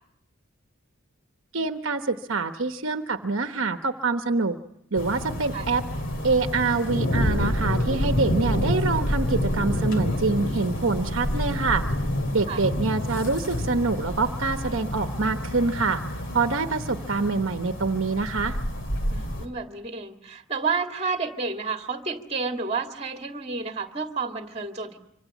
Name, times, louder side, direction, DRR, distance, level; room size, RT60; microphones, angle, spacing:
voice 1, 1.5-4.6 4.9-5.8 6.2-11.8 12.3-16.0 16.3-18.6, right 3 dB, 60° right, 6 dB, 1.1 m, -25 dB
sound 1, 5.0-19.5, equal, 55° left, 2.6 m, -28 dB
voice 2, 19.1-25.0, right 4 dB, 30° right, 4 dB, 1.9 m, -30 dB
26.0 x 25.0 x 8.3 m, 0.78 s
head